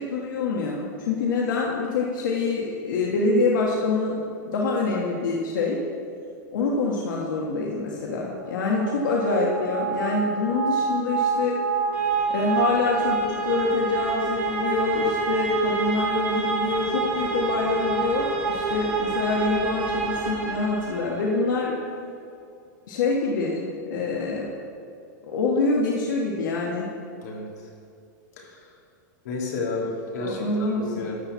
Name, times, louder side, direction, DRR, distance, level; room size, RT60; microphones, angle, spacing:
voice 1, 0.0-4.2 4.4-5.8 6.5-11.6 12.3-21.7 22.9-24.5 25.2-26.9 30.2-30.8, left 3 dB, 85° left, -3 dB, 1.6 m, -25 dB
sound 1, 8.6-21.4, right 4 dB, 15° right, 1.8 m, -27 dB
voice 2, 28.4-28.7 29.2-31.2, left 3 dB, 60° left, -2 dB, 2.5 m, -31 dB
12.5 x 4.4 x 8.2 m, 2.4 s
supercardioid pair, 170°, 10 cm